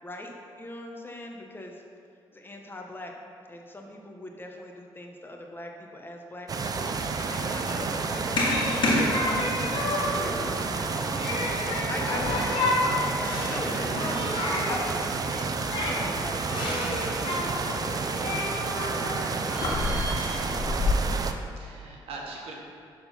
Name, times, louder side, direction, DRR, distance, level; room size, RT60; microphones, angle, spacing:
voice 1, 0.0-1.8 2.3-3.1 3.5-8.5 8.9-11.5 11.9-15.5 15.9-20.6, left 1 dB, 20° left, 1 dB, 1.0 m, -41 dB
sound 1, 6.5-21.3, right 4 dB, 40° right, 0.5 m, -30 dB
Human group actions, 6.6-20.9, left 2 dB, 55° left, 1.6 m, -30 dB
sound 2, 9.6-20.9, right 1 dB, 15° right, 1.6 m, -46 dB
voice 2, 21.6-22.5, right 3 dB, 80° right, -1 dB, 1.1 m, -43 dB
6.7 x 3.9 x 5.6 m, 2.3 s
supercardioid pair, 70°, 10 cm